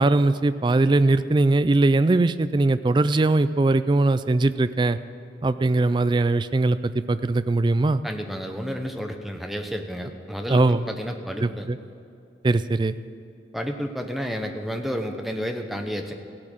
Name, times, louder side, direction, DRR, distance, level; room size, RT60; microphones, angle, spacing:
voice 1, 0.0-5.0 5.4-8.0 10.5-10.8 11.4-11.8 12.4-12.9, right 2 dB, 25° right, 13 dB, 0.3 m, -20 dB
voice 2, 8.0-11.7 13.5-16.1, equal, ahead, 4 dB, 0.9 m, -31 dB
16.0 x 8.7 x 6.4 m, 2.6 s
head